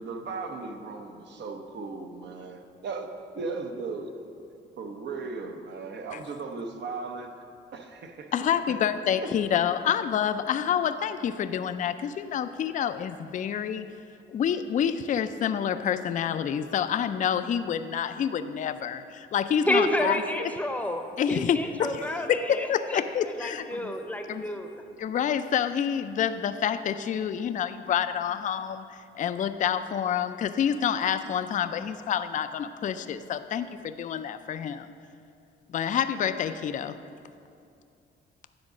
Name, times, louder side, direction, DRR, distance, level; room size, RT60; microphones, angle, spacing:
voice 1, 0.0-3.1 3.4-4.1 4.8-7.3 7.7-8.3 8.7-8.8 9.2-9.3, right 4 dB, 60° right, 4 dB, 0.8 m, -36 dB
voice 2, 8.3-13.9 14.3-20.2 21.2-23.9 24.3-24.4 25.0-34.9 35.7-37.0, left 8 dB, 40° left, 10 dB, 0.4 m, -28 dB
voice 3, 19.6-24.8, left 1 dB, 5° left, 4 dB, 0.7 m, -30 dB
9.7 x 3.9 x 6.1 m, 2.5 s
cardioid pair, 90°, 20 cm